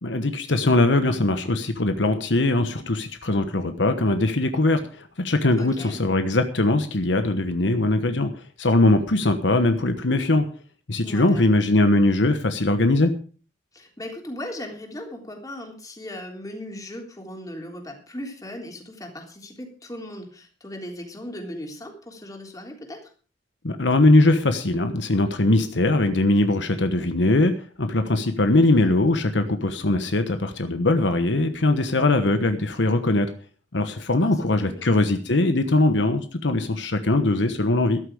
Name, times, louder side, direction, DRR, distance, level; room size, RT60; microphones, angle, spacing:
voice 1, 0.0-10.5 10.9-13.1 23.6-33.3 33.7-38.0, left 2 dB, 80° left, 8 dB, 1.2 m, -21 dB
voice 2, 5.6-6.0 11.0-11.6 13.7-23.1 28.4-28.9 34.2-34.9, left 1 dB, 20° left, 2 dB, 3.5 m, -38 dB
14.0 x 11.5 x 4.9 m, 0.40 s
head